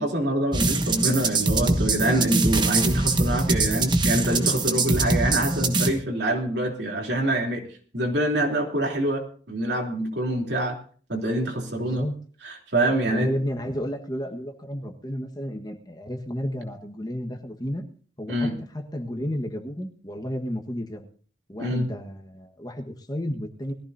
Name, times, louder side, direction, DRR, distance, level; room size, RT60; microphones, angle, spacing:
voice 1, 0.0-7.7 7.9-10.8 11.1-12.0 12.4-13.3 18.3-18.5 21.6-21.9, right 1 dB, 65° right, 1 dB, 3.2 m, -25 dB
sound 1, 0.5-5.9, right 3 dB, 25° right, 1.2 m, -23 dB
voice 2, 11.8-12.1 12.9-17.8 18.2-21.1 21.5-23.7, equal, 20° left, 4 dB, 1.4 m, -32 dB
21.0 x 15.0 x 2.7 m, 0.42 s
head